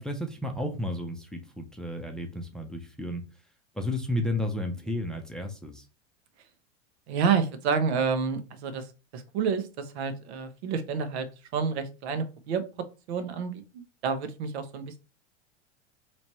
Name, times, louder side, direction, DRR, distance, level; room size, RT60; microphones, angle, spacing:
voice 1, 0.0-3.2 3.7-5.9, left 1 dB, ahead, 3 dB, 0.7 m, -32 dB
voice 2, 7.1-8.9 9.1-11.3 11.5-12.6 13.1-13.6 14.0-15.0, right 6 dB, 65° right, 9 dB, 0.9 m, -29 dB
4.1 x 3.0 x 3.0 m, 0.31 s
hypercardioid pair, 100°, 35 cm